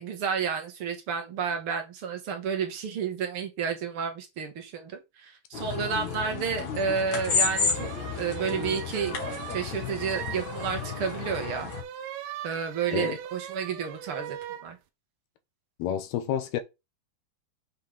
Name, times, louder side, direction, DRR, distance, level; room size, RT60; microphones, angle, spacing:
voice 1, 0.0-7.9 8.2-11.7 12.4-14.8, right 6 dB, 50° right, 1.7 m, -31 dB
sound 1, 5.5-11.8, left 6 dB, 50° left, 2.5 m, -32 dB
sound 2, 7.2-14.7, right 10 dB, 75° right, 2.6 m, -40 dB
voice 2, 15.8-16.6, left 10 dB, 70° left, 2.8 m, -29 dB
8.1 x 6.2 x 3.6 m
omnidirectional pair, 5.1 m